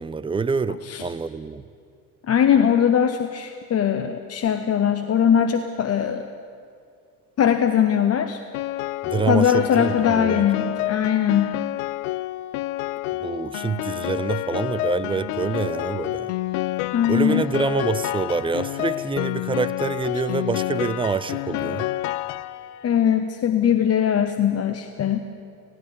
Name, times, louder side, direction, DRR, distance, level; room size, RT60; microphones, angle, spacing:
voice 1, 0.0-1.6 9.0-10.4 13.2-16.3 17.1-21.9, right 5 dB, 10° right, 14 dB, 0.4 m, -26 dB
voice 2, 2.3-6.3 7.4-8.4 9.3-11.5 16.9-17.4 22.8-25.2, left 8 dB, 30° left, 9 dB, 1.0 m, -20 dB
Piano, 8.5-22.9, left 16 dB, 65° left, 0.7 m, -29 dB
18.5 x 16.5 x 8.4 m, 2.3 s
figure-of-eight pair, 60°, 50 cm